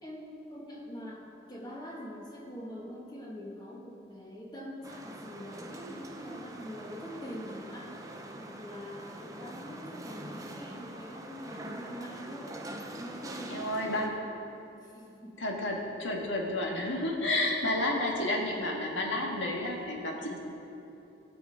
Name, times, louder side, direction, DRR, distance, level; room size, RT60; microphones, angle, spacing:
voice 1, 0.0-8.0 8.4-12.7 13.0-14.3 14.8-15.4 17.6-17.8, equal, 20° left, -3 dB, 1.8 m, -44 dB
sound 1, 4.8-14.1, right 1 dB, 20° right, 0.7 m, -44 dB
voice 2, 13.5-14.1 15.4-20.4, left 1 dB, 80° left, 0 dB, 1.8 m, -31 dB
16.5 x 7.0 x 5.0 m, 2.9 s
head